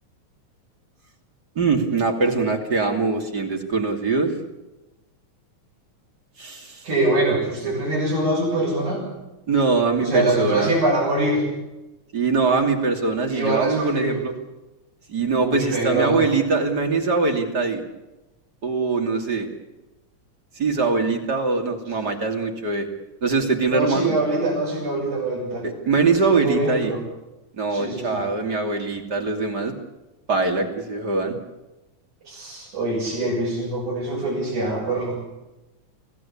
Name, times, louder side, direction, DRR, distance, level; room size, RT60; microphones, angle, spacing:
voice 1, 1.6-4.3 6.4-6.8 9.5-10.7 12.1-14.3 15.1-17.8 18.6-19.5 20.6-22.9 23.2-24.1 25.6-26.9 27.6-29.7 30.3-31.3, right 4 dB, 35° right, 4 dB, 3.1 m, -22 dB
voice 2, 6.8-9.0 10.0-11.5 13.3-14.2 15.4-16.3 23.7-25.7 26.2-27.0 27.7-28.2 32.2-35.2, right 2 dB, 80° right, -6 dB, 9.1 m, -24 dB
26.5 x 17.5 x 8.6 m, 1.0 s
omnidirectional pair, 3.4 m